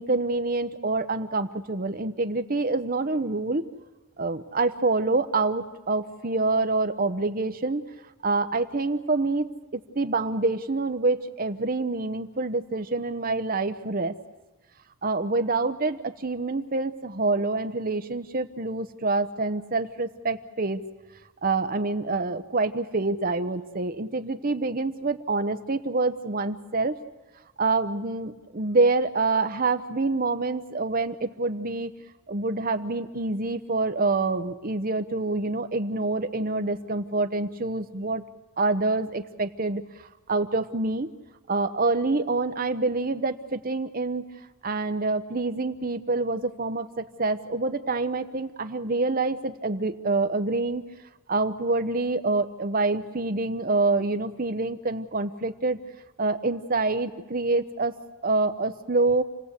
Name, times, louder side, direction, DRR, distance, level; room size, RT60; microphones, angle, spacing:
voice 1, 0.0-3.6 4.2-7.9 8.2-14.1 15.0-20.8 21.4-27.0 27.6-31.9 32.3-38.2 38.6-39.8 40.3-41.1 41.5-44.2 44.6-50.8 51.3-55.8 56.2-57.9 58.2-59.2, right 3 dB, 40° right, 8 dB, 1.0 m, -26 dB
29.0 x 18.0 x 8.3 m, 1.2 s
head